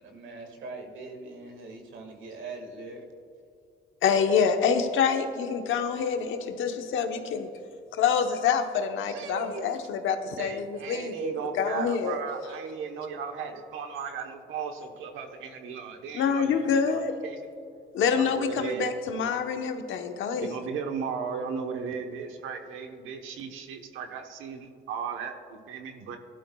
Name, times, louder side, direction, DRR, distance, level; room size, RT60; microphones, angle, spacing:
voice 1, 0.0-3.1, right 3 dB, 75° right, 4 dB, 1.9 m, -42 dB
voice 2, 4.0-7.5 7.9-12.2 16.1-17.1 17.9-20.6, left 6 dB, 80° left, 6 dB, 1.0 m, -26 dB
voice 3, 9.1-9.8 10.4-17.4 18.1-18.9 20.4-26.2, right 6 dB, 90° right, 5 dB, 1.1 m, -36 dB
15.5 x 12.0 x 2.3 m, 2.5 s
cardioid pair, 90°, 20 cm